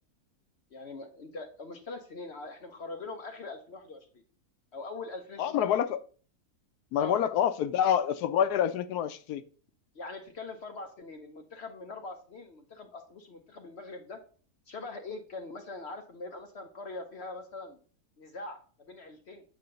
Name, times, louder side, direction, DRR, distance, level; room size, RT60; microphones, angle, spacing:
voice 1, 0.7-4.2 4.7-5.7 7.0-7.2 9.9-14.2 14.7-17.8 18.2-19.4, left 3 dB, 50° left, 0.9 m, -42 dB
voice 2, 5.4-6.0 6.9-9.4, left 9 dB, 85° left, 1.2 m, -27 dB
8.5 x 2.8 x 6.3 m
omnidirectional pair, 1.6 m